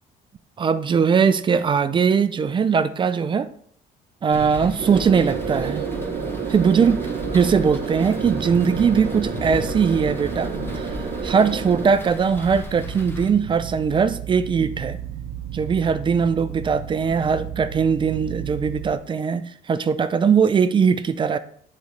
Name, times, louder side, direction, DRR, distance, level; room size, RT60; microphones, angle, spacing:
voice 1, 0.6-3.5 4.2-5.9 6.5-7.0 7.3-10.5 11.2-15.0 15.5-21.4, right 6 dB, 30° right, 13 dB, 0.5 m, -20 dB
sound 1, 4.3-13.3, left 2 dB, 15° left, 1.0 m, -35 dB
sound 2, 4.8-11.9, right 6 dB, 45° right, 0.9 m, -29 dB
sound 3, 12.7-19.0, right 9 dB, 85° right, 0.8 m, -34 dB
10.5 x 4.2 x 3.2 m, 0.62 s
cardioid pair, 110°, 17 cm